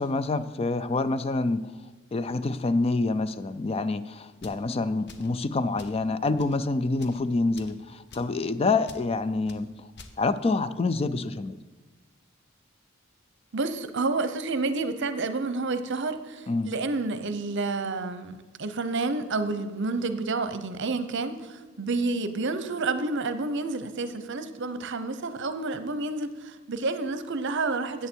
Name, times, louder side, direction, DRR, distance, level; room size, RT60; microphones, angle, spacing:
voice 1, 0.0-1.7 2.1-9.9 10.2-11.6 16.5-16.7, left 3 dB, 30° left, 13 dB, 0.4 m, -27 dB
sound 1, 4.4-4.6 5.1-5.4 5.8-6.0 6.4-6.6 6.9-7.2 7.6-7.8 8.1-8.3 8.9-9.1 9.5-9.6 10.0-10.2, left 3 dB, 55° left, 1.0 m, -48 dB
voice 2, 13.5-28.1, right 3 dB, 60° right, 11 dB, 0.8 m, -29 dB
13.5 x 8.9 x 4.5 m, 1.3 s
head